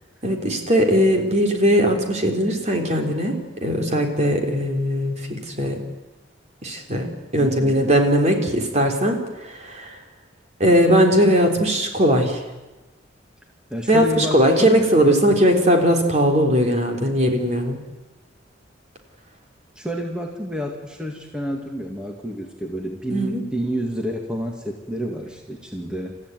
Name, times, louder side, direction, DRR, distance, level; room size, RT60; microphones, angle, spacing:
voice 1, 0.2-5.8 6.6-7.1 7.3-10.0 10.6-12.4 13.9-17.8 23.1-23.4, equal, 40° right, 3 dB, 3.7 m, -19 dB
voice 2, 13.7-14.9 19.8-26.2, equal, 5° right, 1 dB, 2.1 m, -29 dB
29.0 x 14.5 x 9.3 m, 1.1 s
head